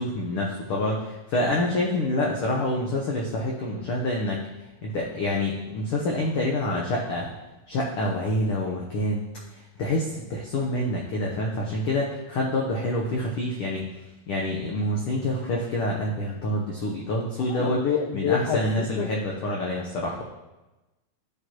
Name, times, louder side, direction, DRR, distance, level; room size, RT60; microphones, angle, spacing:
voice 1, 0.0-4.4 4.8-7.3 7.7-9.2 9.5-13.8 14.3-17.9 18.1-20.2, left 1 dB, 65° left, -2 dB, 1.4 m, -27 dB
voice 2, 17.5-19.1, left 8 dB, 85° left, 3 dB, 1.4 m, -27 dB
12.5 x 5.2 x 2.9 m, 1.0 s
omnidirectional pair, 3.4 m